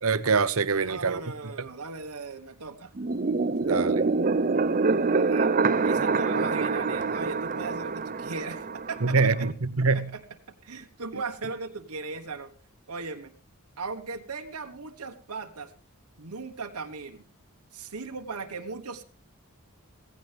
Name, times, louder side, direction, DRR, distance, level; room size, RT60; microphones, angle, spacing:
voice 1, 0.0-1.5 3.7-4.0 9.0-10.1, right 4 dB, 70° right, 0.9 m, -25 dB
voice 2, 0.9-2.9 5.1-5.5 5.8-9.5 9.9-10.2 10.6-12.5 12.9-13.3 13.8-15.7 16.2-17.2 17.7-19.0, right 4 dB, 90° right, 1.3 m, -37 dB
sound 1, 3.0-9.5, right 4 dB, 35° right, 0.6 m, -26 dB
17.0 x 15.5 x 3.4 m
head